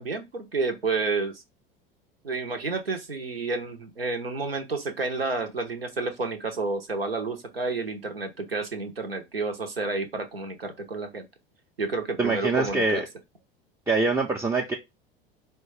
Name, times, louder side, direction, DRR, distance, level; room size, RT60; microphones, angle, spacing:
voice 1, 0.0-1.4 2.2-11.3 11.8-13.0, right 3 dB, 85° right, 0.7 m, -30 dB
voice 2, 12.2-13.0 13.9-14.7, right 3 dB, 10° right, 0.4 m, -24 dB
4.5 x 2.2 x 3.1 m
figure-of-eight pair, 75°, 29 cm